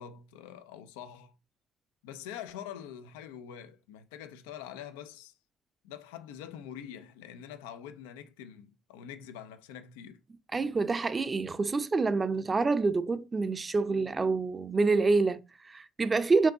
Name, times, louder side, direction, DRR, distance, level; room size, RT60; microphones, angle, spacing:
voice 1, 0.0-1.3 2.0-5.4 5.8-10.2, left 9 dB, 85° left, 0.4 m, -45 dB
voice 2, 10.5-16.5, right 3 dB, 35° right, 0.5 m, -27 dB
4.5 x 2.7 x 3.8 m
hypercardioid pair, 50°, 0 cm